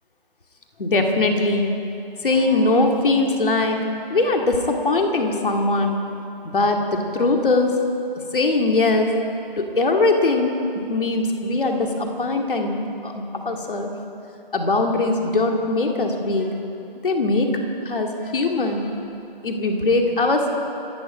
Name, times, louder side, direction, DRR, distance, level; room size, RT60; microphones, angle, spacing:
voice 1, 0.8-1.7 2.2-3.9 4.1-6.0 6.4-7.8 8.3-9.1 9.6-10.6 10.9-12.8 13.0-13.9 14.5-16.5 17.0-17.6 17.9-18.9 19.4-20.5, left 2 dB, 65° left, 2 dB, 2.4 m, -21 dB
28.0 x 9.6 x 5.1 m, 2.9 s
figure-of-eight pair, 165°, 29 cm